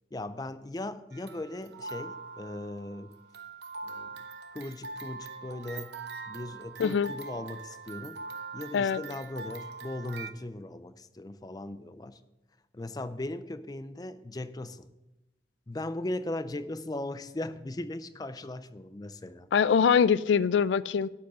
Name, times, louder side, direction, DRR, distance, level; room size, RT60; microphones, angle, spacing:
voice 1, 0.1-3.1 3.8-4.2 4.5-5.9 6.3-8.2 8.5-12.2 12.7-14.9 15.7-19.5, left 1 dB, 20° left, 12 dB, 0.4 m, -38 dB
sound 1, 1.1-10.3, right 4 dB, 70° right, 0.8 m, -42 dB
voice 2, 6.8-7.1 8.7-9.0 19.5-21.1, left 6 dB, 90° left, 18 dB, 0.4 m, -23 dB
12.0 x 4.8 x 6.2 m, 0.99 s
head